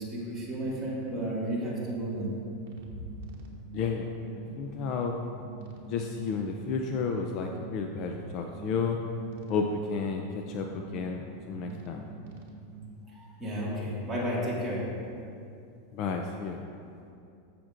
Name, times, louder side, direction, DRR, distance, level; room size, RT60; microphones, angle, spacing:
voice 1, 0.0-2.3 13.1-14.8, equal, 5° right, -8 dB, 2.0 m, -32 dB
sound 1, 0.6-12.8, right 4 dB, 65° right, 1.1 m, -45 dB
voice 2, 3.7-4.1 4.6-5.2 5.9-9.0 9.5-11.2 11.5-12.0 15.9-16.6, left 5 dB, 40° left, 3 dB, 0.4 m, -31 dB
13.5 x 5.9 x 2.5 m, 2.5 s
supercardioid pair, 160°, 0 cm